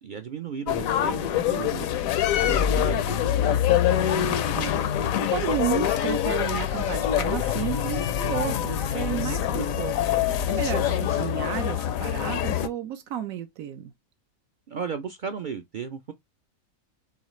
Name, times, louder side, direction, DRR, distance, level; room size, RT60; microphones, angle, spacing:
voice 1, 0.0-3.6 14.7-16.1, right 6 dB, 65° right, 0.4 m, -35 dB
sound 1, 0.7-12.7, left 10 dB, 80° left, 1.0 m, -25 dB
voice 2, 3.9-10.0 10.5-13.9, right 10 dB, 80° right, 1.1 m, -32 dB
7.1 x 2.4 x 3.0 m
omnidirectional pair, 1.4 m